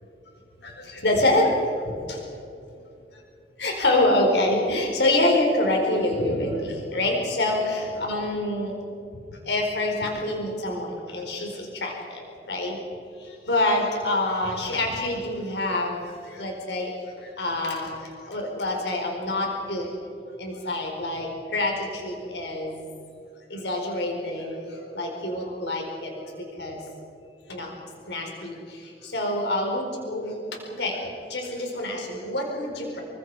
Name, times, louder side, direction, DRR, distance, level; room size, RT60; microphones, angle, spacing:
voice 1, 0.6-1.5 1.8-2.2 3.6-8.7 9.3-12.8 13.2-19.9 20.4-22.9 23.5-26.8 27.5-27.7 28.1-30.4 30.8-33.0, left 1 dB, 75° left, 1 dB, 4.6 m, -26 dB
27.5 x 24.5 x 4.9 m, 2.8 s
head